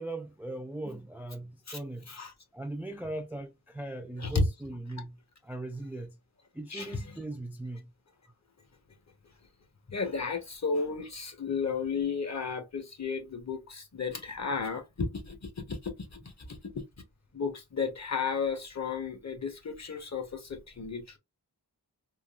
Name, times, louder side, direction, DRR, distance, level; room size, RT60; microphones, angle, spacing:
voice 1, 0.0-2.1 2.5-6.2 6.5-7.9, right 2 dB, 5° right, 0.3 m, -39 dB
voice 2, 9.9-16.1 16.4-16.8 17.3-21.2, left 4 dB, 45° left, 1.0 m, -33 dB
3.6 x 2.3 x 2.3 m
wide cardioid pair, 90°, 39 cm